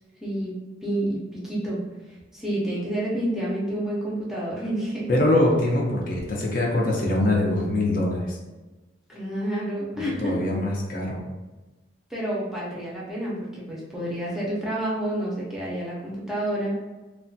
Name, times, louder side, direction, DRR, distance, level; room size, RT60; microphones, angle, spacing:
voice 1, 0.2-0.5 0.8-1.8 2.1-5.1 9.1-10.4 12.1-16.8, right 1 dB, ahead, -6 dB, 0.5 m, -29 dB
voice 2, 5.1-8.4 9.9-11.2, left 1 dB, 50° left, -2 dB, 0.5 m, -23 dB
3.0 x 2.2 x 2.6 m, 1.1 s
head